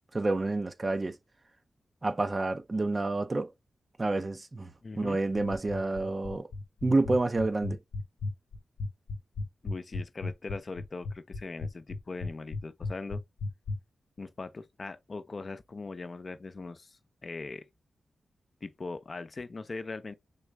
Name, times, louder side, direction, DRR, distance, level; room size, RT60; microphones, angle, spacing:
voice 1, 0.1-1.2 2.0-3.5 4.0-4.7 5.0-6.5 6.8-7.8, right 2 dB, 35° right, 0.7 m, -29 dB
voice 2, 4.8-5.2 9.6-13.2 14.2-17.6 18.6-20.1, left 3 dB, 50° left, 0.6 m, -40 dB
sound 1, 5.4-13.8, left 3 dB, 90° left, 0.6 m, -34 dB
3.9 x 3.2 x 3.4 m
cardioid pair, 60°, 0 cm